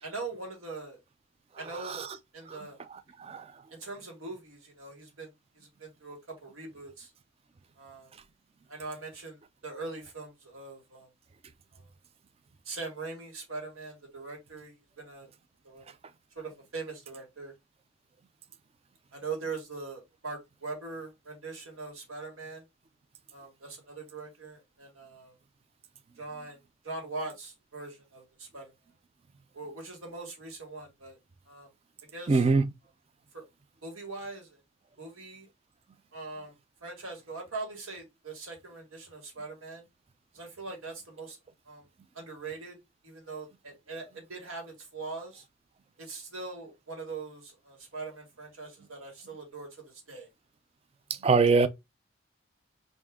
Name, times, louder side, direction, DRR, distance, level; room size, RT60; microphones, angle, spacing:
voice 1, 0.0-1.0 1.6-2.1 2.3-2.8 3.7-7.1 7.8-8.1 8.7-11.1 11.7-11.9 12.6-15.3 15.6-15.9 16.3-17.5 19.1-22.6 23.3-25.4 26.2-28.7 29.5-31.2 31.5-31.7 32.1-32.5 33.3-33.4 33.8-34.6 35.0-35.5 36.1-36.5 36.8-39.9 40.3-41.4 41.6-41.8 42.1-42.8 43.0-45.4 46.0-50.3, right 3 dB, 85° right, 1.6 m, -41 dB
voice 2, 32.3-32.6 51.2-51.7, right 4 dB, 30° right, 0.3 m, -21 dB
3.5 x 2.6 x 3.5 m
head